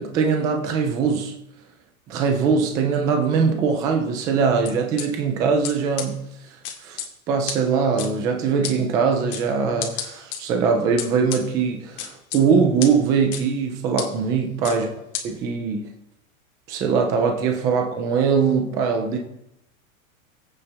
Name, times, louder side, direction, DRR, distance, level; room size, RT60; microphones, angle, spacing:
voice 1, 0.0-1.3 2.1-6.2 6.8-14.9 15.2-15.9 16.7-19.2, right 5 dB, 10° right, 0.4 m, -22 dB
sound 1, 4.7-5.1 5.6-5.7 6.0-6.1 6.6-7.1 7.5-7.6 8.0-8.1 8.6-8.7 9.3-9.4 9.8-10.4 11.0-11.4 12.0-12.4 12.8-12.9 13.3-13.4 14.0-14.1 14.6-14.8 15.1-15.2, left 10 dB, 40° left, 2.2 m, -29 dB
21.0 x 8.8 x 3.4 m
supercardioid pair, 165°, 42 cm